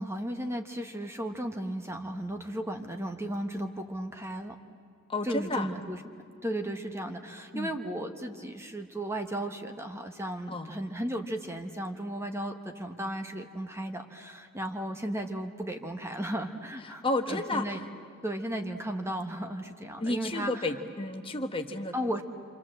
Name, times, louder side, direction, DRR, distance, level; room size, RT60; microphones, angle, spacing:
voice 1, 0.0-4.6 5.2-6.0 6.4-17.8 18.2-20.7 21.9-22.2, right 1 dB, 10° right, 5 dB, 1.2 m, -35 dB
voice 2, 5.1-5.7 7.5-7.7 10.5-10.7 16.8-17.9 20.0-21.9, left 2 dB, 25° left, 6 dB, 1.2 m, -32 dB
27.5 x 27.0 x 7.6 m, 2.4 s
head